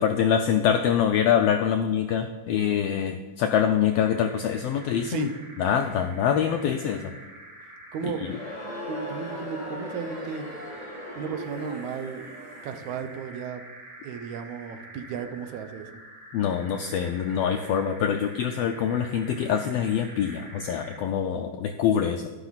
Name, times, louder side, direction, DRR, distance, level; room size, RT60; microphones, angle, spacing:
voice 1, 0.0-5.3 5.6-7.1 16.3-22.3, left 8 dB, 90° left, 7 dB, 1.4 m, -25 dB
sound 1, 3.8-21.1, right 1 dB, 45° right, 2.2 m, -47 dB
voice 2, 7.9-8.3 8.9-10.5 11.2-12.2 12.6-13.6 14.0-16.0, right 6 dB, 80° right, 8 dB, 2.2 m, -34 dB
Crowd, 8.1-13.1, left 1 dB, 25° left, 1.0 m, -39 dB
11.5 x 10.5 x 4.1 m, 1.3 s
omnidirectional pair, 3.4 m